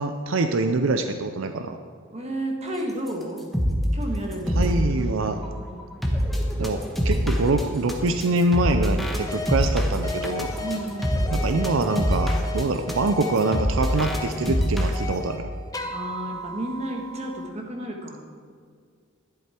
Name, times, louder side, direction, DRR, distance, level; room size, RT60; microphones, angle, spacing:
voice 1, 0.0-1.8 4.5-5.4 6.6-10.5 11.3-15.5, right 2 dB, 70° right, 7 dB, 0.5 m, -24 dB
voice 2, 2.1-3.4 3.9-4.8 10.6-11.4 15.9-18.2, right 1 dB, 30° right, 1 dB, 1.6 m, -32 dB
sound 1, 3.1-3.2 3.4-3.9 4.3-15.0, equal, ahead, 1.2 m, -25 dB
sound 2, 9.2-9.6 10.0-15.4 15.7-17.5, left 2 dB, 15° left, 0.8 m, -35 dB
11.5 x 10.5 x 4.4 m, 2.1 s
head